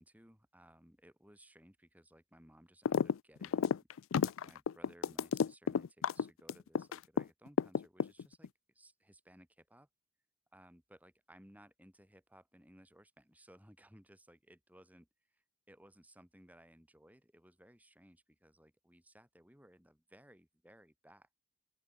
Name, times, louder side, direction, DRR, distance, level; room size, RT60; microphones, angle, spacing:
voice 1, 0.0-3.7 4.2-9.9 10.5-21.3, right 1 dB, 10° right, 4.3 m, -61 dB
sound 1, 2.9-3.1 3.4-7.2 7.6-8.5, left 6 dB, 85° left, 0.4 m, -31 dB
open air
head